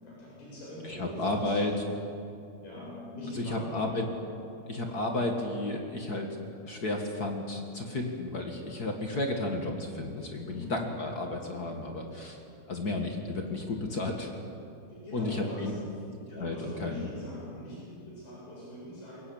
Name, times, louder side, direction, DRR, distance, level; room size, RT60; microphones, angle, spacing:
voice 1, 0.0-1.6 2.6-3.9 10.4-10.7 14.9-15.7 16.3-19.2, left 1 dB, 85° left, -6 dB, 9.8 m, -42 dB
voice 2, 0.8-1.7 3.3-4.0 4.7-6.4 6.6-12.4 12.7-14.3 15.1-15.7 16.3-17.1, left 2 dB, 40° left, 2 dB, 1.5 m, -32 dB
22.5 x 19.5 x 8.8 m, 2.6 s
omnidirectional pair, 4.3 m